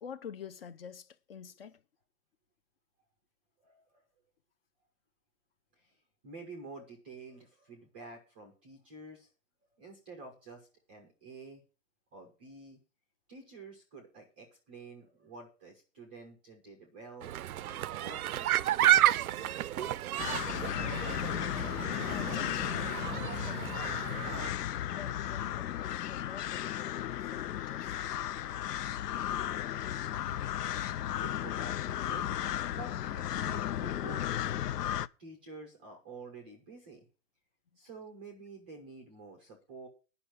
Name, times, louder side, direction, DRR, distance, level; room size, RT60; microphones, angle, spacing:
voice 1, 0.0-1.8 21.9-24.0 24.8-28.0, left 7 dB, 40° left, 0.6 m, -48 dB
voice 2, 3.6-4.0 5.7-9.3 9.8-11.6 12.1-12.8 13.3-17.4 17.6-20.0 28.8-29.3 31.2-32.3 32.7-34.4 35.2-37.1 37.8-39.9, right 3 dB, 5° right, 0.5 m, -50 dB
sound 1, 17.2-24.5, right 12 dB, 65° right, 0.5 m, -31 dB
sound 2, 20.2-35.1, left 11 dB, 80° left, 0.6 m, -35 dB
10.5 x 5.7 x 7.6 m
hypercardioid pair, 155°, 47 cm